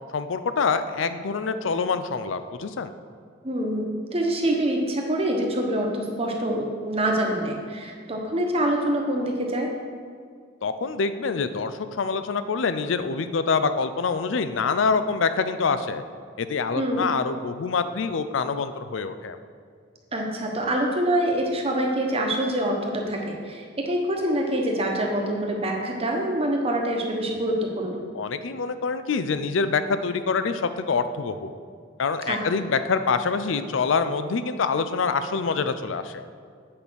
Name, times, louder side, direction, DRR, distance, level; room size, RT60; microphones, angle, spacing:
voice 1, 0.1-2.9 10.6-16.0 16.4-19.4 28.1-31.5 32.0-36.3, left 5 dB, 75° left, 11 dB, 0.5 m, -25 dB
voice 2, 3.4-9.7 16.8-17.0 20.1-28.0 32.3-32.4, right 1 dB, 30° right, 1 dB, 1.1 m, -25 dB
8.5 x 5.2 x 6.3 m, 2.1 s
head